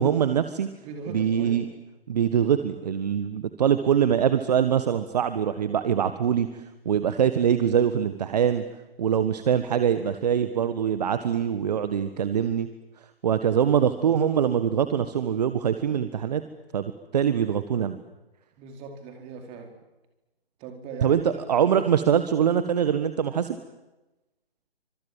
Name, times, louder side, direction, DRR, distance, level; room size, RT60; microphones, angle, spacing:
voice 1, 0.0-0.7 1.1-1.7 2.1-8.6 9.0-12.7 13.2-16.4 16.7-17.9 21.0-21.2 21.5-23.6, right 8 dB, 40° right, 11 dB, 1.5 m, -23 dB
voice 2, 0.8-1.6 18.6-19.7 20.6-21.4, right 4 dB, 20° right, 4 dB, 4.4 m, -39 dB
29.0 x 26.0 x 7.5 m, 1.0 s
figure-of-eight pair, 140°, 31 cm